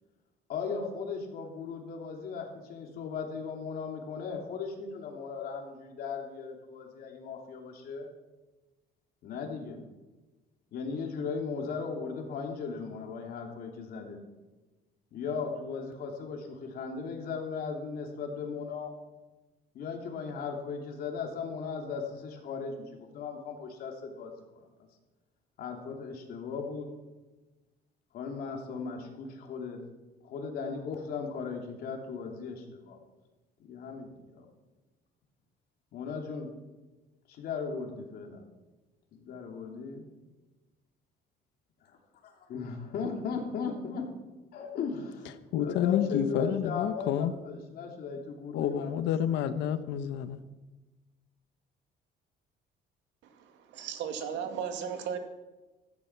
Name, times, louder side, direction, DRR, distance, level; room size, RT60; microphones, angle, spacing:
voice 1, 0.5-8.1 9.2-9.8 10.7-14.2 15.1-18.9 19.7-24.6 25.6-26.9 28.1-29.8 30.2-33.0 33.6-34.5 35.9-36.5 37.3-38.4 39.1-40.0 42.2-44.1 44.5-48.9, left 5 dB, 55° left, 2.9 m, -37 dB
voice 2, 45.5-47.3 48.5-50.4, left 9 dB, 85° left, 1.1 m, -29 dB
voice 3, 53.3-55.2, right 8 dB, 90° right, 2.4 m, -36 dB
16.0 x 14.5 x 5.9 m
cardioid pair, 180°, 18 cm